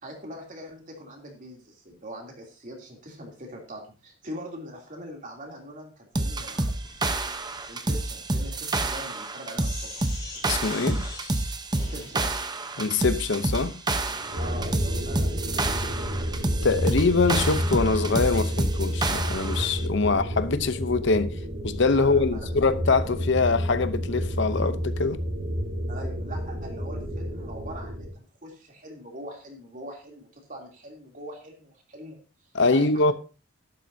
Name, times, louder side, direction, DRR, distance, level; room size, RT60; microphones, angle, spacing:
voice 1, 0.0-6.7 7.7-10.0 11.1-11.2 11.7-12.3 14.4-16.3 20.0-20.1 22.0-22.5 25.9-32.2 32.7-33.1, equal, 40° right, 3.1 m, -42 dB
sound 1, 6.1-19.7, right 2 dB, 20° right, 0.9 m, -28 dB
Sink (filling or washing), 6.5-14.5, left 3 dB, 20° left, 3.5 m, -45 dB
voice 2, 10.4-11.0 12.8-13.8 16.6-21.3 21.6-25.2 32.5-33.1, left 4 dB, 60° left, 0.8 m, -24 dB
sound 2, 14.3-28.1, equal, 70° right, 6.8 m, -30 dB
12.0 x 12.0 x 2.8 m
head